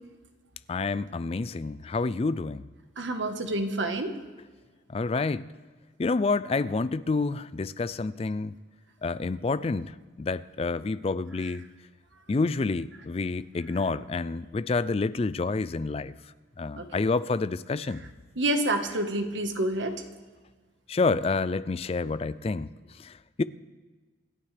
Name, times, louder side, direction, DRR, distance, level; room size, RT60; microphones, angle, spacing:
voice 1, 0.7-2.6 4.9-5.5 6.0-8.5 9.0-11.7 12.3-16.1 16.6-18.0 20.9-22.7 23.0-23.4, left 3 dB, 30° left, 0.3 m, -28 dB
voice 2, 3.0-4.1 16.7-17.0 18.4-19.9, right 1 dB, 75° right, 1.3 m, -28 dB
26.5 x 11.5 x 3.3 m
head